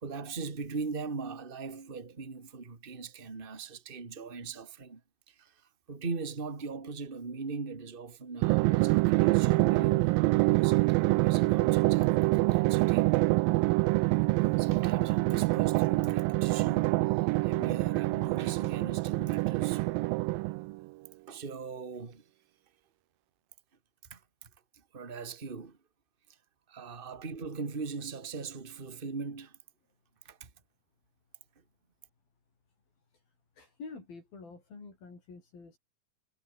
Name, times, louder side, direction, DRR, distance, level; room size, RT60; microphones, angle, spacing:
voice 1, 0.0-5.0 5.3-10.1 10.5-13.1 14.3-17.0 17.2-19.8 21.3-22.2 24.1-25.8 26.3-26.4 26.7-29.6 30.2-30.5, right 4 dB, 20° right, 1.8 m, -40 dB
Drum, 8.4-20.8, right 23 dB, 85° right, 2.0 m, -26 dB
voice 2, 33.6-35.8, left 4 dB, 65° left, 8.7 m, -47 dB
omnidirectional pair, 4.6 m